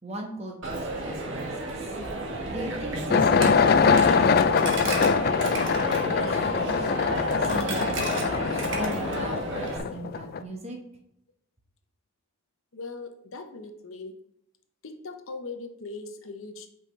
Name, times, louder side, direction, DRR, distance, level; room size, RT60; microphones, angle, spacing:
voice 1, 0.0-1.9 2.2-6.9 7.5-10.8, right 1 dB, 30° right, 0 dB, 1.4 m, -39 dB
Coin (dropping), 0.6-9.8, right 2 dB, 60° right, 1.4 m, -32 dB
sound 1, 3.1-10.4, left 5 dB, 45° left, 0.3 m, -23 dB
voice 2, 12.7-14.1 14.8-16.7, left 3 dB, 70° left, 6 dB, 0.8 m, -39 dB
8.7 x 5.5 x 3.2 m, 0.78 s
head